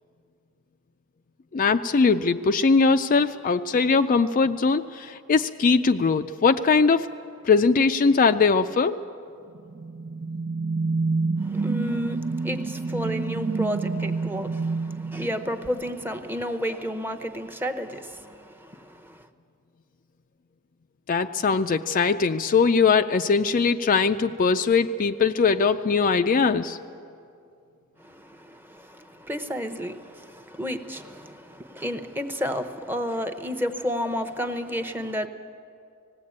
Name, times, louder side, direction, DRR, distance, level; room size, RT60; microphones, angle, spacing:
voice 1, 1.5-7.1 7.4-9.0 21.1-26.8, left 4 dB, 40° left, 0.4 m, -21 dB
sound 1, 9.5-16.1, right 4 dB, 40° right, 0.5 m, -28 dB
voice 2, 11.4-19.3 28.0-35.3, equal, 10° right, 0.8 m, -32 dB
19.0 x 16.0 x 8.7 m
head